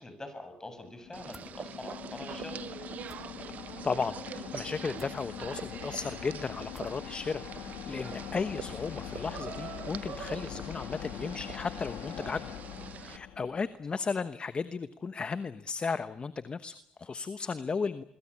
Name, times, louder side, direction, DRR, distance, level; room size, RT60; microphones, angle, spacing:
voice 1, 0.0-2.6 8.0-8.4, left 2 dB, 20° left, 8 dB, 7.7 m, -44 dB
sound 1, 0.7-13.8, left 11 dB, 85° left, 2.3 m, -43 dB
sound 2, 1.1-13.2, right 9 dB, 60° right, 1.0 m, -44 dB
sound 3, 1.3-1.5 3.0-3.2 4.9-5.2 6.7-7.0, right 1 dB, 5° right, 1.9 m, -54 dB
voice 2, 3.8-12.5 13.0-18.0, left 5 dB, 35° left, 12 dB, 1.1 m, -35 dB
26.0 x 22.5 x 8.7 m, 0.76 s
cardioid pair, 85°, 3 cm